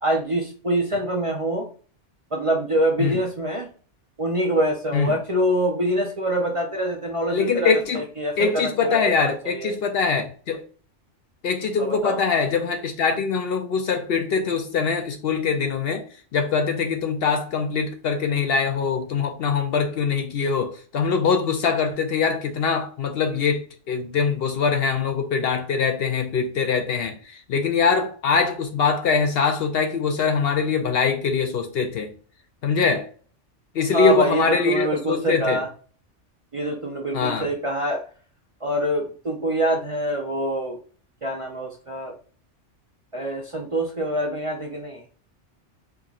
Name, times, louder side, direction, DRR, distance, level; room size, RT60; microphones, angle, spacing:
voice 1, 0.0-1.7 2.3-3.7 4.2-9.7 11.8-12.2 33.9-35.7 36.5-38.0 38.6-40.8 41.2-42.1 43.1-45.0, right 1 dB, 40° right, 0.5 m, -25 dB
voice 2, 7.3-8.0 8.4-10.6 11.4-16.0 16.3-32.1 32.6-33.1 33.7-35.6 37.1-37.5, left 5 dB, 65° left, 0.7 m, -23 dB
4.6 x 2.9 x 2.4 m
omnidirectional pair, 1.2 m